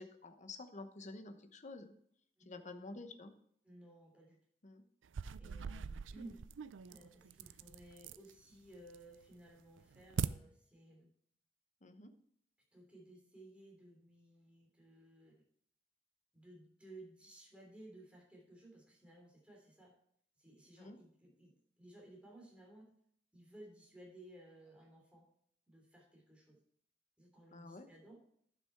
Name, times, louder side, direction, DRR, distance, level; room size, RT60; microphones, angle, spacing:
voice 1, 0.0-1.9 2.5-3.3 4.6-4.8 11.8-12.1 20.8-21.0 27.5-27.9, left 2 dB, 40° left, 8 dB, 1.0 m, -50 dB
voice 2, 3.6-4.4 5.4-6.4 6.9-11.1 12.7-15.4 16.3-19.9 20.4-22.9 23.3-25.3 25.7-26.6 27.2-28.2, right 1 dB, 5° right, -1 dB, 3.2 m, -57 dB
sound 1, 5.0-8.3 8.7-9.2 9.6-10.3, right 6 dB, 90° right, 0.4 m, -42 dB
11.0 x 6.2 x 4.6 m, 0.66 s
head